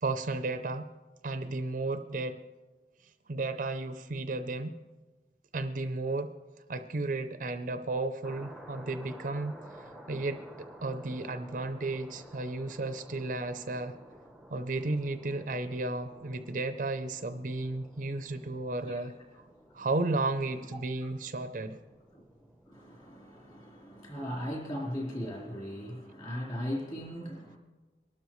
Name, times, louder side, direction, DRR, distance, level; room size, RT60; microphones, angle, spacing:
voice 1, 0.0-0.9 1.2-2.4 3.3-4.8 5.5-6.3 6.7-14.0 14.5-19.1 19.7-21.8, right 2 dB, 45° right, 9 dB, 0.5 m, -33 dB
sound 1, 8.2-24.7, right 1 dB, ahead, 0.8 m, -53 dB
voice 2, 22.7-27.6, equal, 30° left, -2 dB, 3.7 m, -38 dB
23.0 x 12.5 x 3.1 m, 1.2 s
head